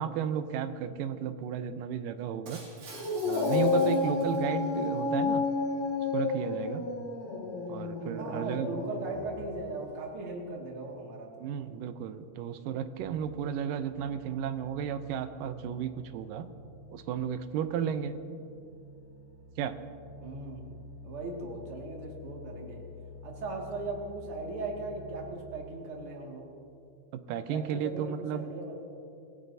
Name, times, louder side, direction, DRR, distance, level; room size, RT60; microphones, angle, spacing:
voice 1, 0.0-2.6 3.2-5.4 6.1-6.9 7.7-8.7 11.4-16.5 16.9-18.1 19.6-19.8 27.3-28.5, right 8 dB, 85° right, 10 dB, 2.4 m, -33 dB
Shatter, 2.5-4.9, right 3 dB, 60° right, 3.9 m, -48 dB
Dog, 2.9-9.6, left 4 dB, 80° left, 3.6 m, -30 dB
voice 2, 8.2-11.5 20.2-20.7 21.0-22.8 23.2-26.5 27.5-28.8, right 3 dB, 45° right, -1 dB, 2.7 m, -38 dB
sound 1, 13.0-25.4, left 2 dB, 5° right, 2.5 m, -50 dB
26.5 x 16.5 x 2.7 m, 2.7 s
omnidirectional pair, 3.8 m